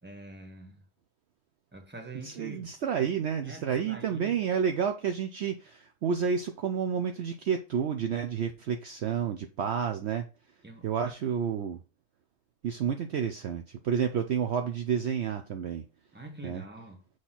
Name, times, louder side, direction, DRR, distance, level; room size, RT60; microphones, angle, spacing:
voice 1, 0.0-0.8 1.7-2.7 3.4-4.4 10.6-10.8 16.1-17.0, right 2 dB, 10° right, 1.2 m, -45 dB
voice 2, 2.2-10.3 10.8-11.8 12.6-15.8 16.4-16.6, right 7 dB, 65° right, 0.8 m, -30 dB
6.4 x 3.2 x 5.6 m
omnidirectional pair, 1.4 m